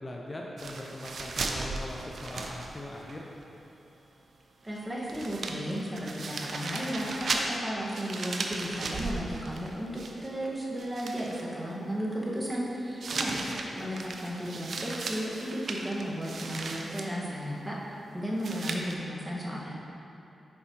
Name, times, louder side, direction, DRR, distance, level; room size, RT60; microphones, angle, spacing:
voice 1, 0.0-3.3 13.1-13.8, left 1 dB, 35° left, -2 dB, 0.6 m, -41 dB
sound 1, 0.6-3.2 3.4-3.5 4.7-4.8 5.1-10.5 10.8-11.4 13.0-17.1 18.4-18.9, right 3 dB, 70° right, 0.4 m, -36 dB
voice 2, 4.6-13.4 13.8-17.8 18.1-19.7, equal, 20° right, -5 dB, 1.4 m, -34 dB
6.8 x 4.9 x 2.9 m, 2.9 s
supercardioid pair, 45°, 0 cm